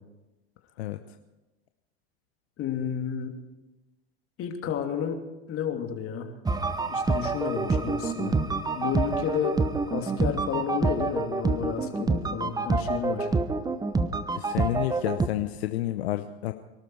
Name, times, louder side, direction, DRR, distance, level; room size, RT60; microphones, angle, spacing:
voice 1, 2.6-3.4 4.4-5.2 5.5-6.3 6.8-8.4 8.7-9.6 9.9-13.3, left 8 dB, 45° left, 3 dB, 2.8 m, -31 dB
sound 1, 6.5-15.3, right 3 dB, 10° right, 1.0 m, -27 dB
voice 2, 14.3-16.5, left 14 dB, 75° left, 8 dB, 0.9 m, -30 dB
24.0 x 12.5 x 4.8 m, 1.0 s
hypercardioid pair, 95°, 32 cm